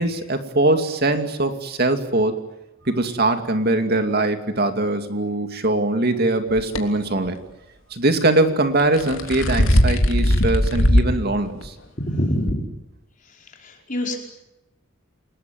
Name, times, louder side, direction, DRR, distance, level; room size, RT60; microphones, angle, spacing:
voice 1, 0.0-2.4 2.8-7.4 7.9-11.7, right 2 dB, 50° right, 7 dB, 2.5 m, -21 dB
sound 1, 6.6-6.8 8.8-11.2 11.6-11.7 12.5-12.6, equal, 75° left, 3.2 m, -18 dB
voice 2, 12.0-12.7 13.6-14.2, equal, 40° left, 1 dB, 5.1 m, -25 dB
29.5 x 19.5 x 9.4 m, 0.90 s
head